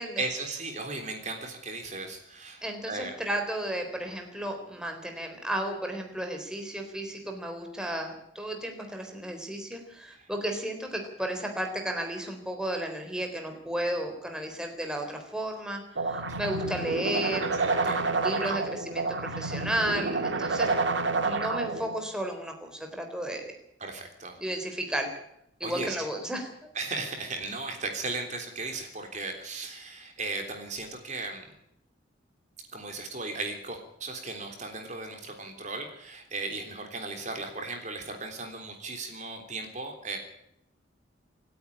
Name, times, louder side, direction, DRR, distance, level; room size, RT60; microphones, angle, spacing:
voice 1, 0.2-3.1 10.1-10.3 16.3-16.4 17.6-18.6 23.8-24.4 25.6-26.1 26.7-31.5 32.7-40.2, right 3 dB, 40° right, 4 dB, 3.4 m, -36 dB
voice 2, 2.6-17.5 17.8-20.7 21.2-23.5 24.4-25.1 25.6-26.5, right 1 dB, 5° right, 3 dB, 3.9 m, -33 dB
sound 1, 16.0-22.0, right 3 dB, 70° right, 2.1 m, -29 dB
28.0 x 9.4 x 9.9 m, 0.77 s
head